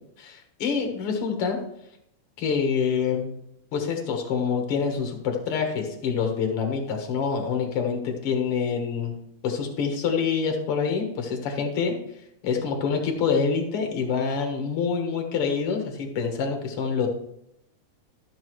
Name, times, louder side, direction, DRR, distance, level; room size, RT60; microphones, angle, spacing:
voice 1, 0.2-1.6 2.4-3.3 3.7-9.1 9.4-12.0 12.4-17.1, left 6 dB, 55° left, 3 dB, 2.1 m, -26 dB
13.0 x 6.3 x 3.1 m, 0.77 s
omnidirectional pair, 3.3 m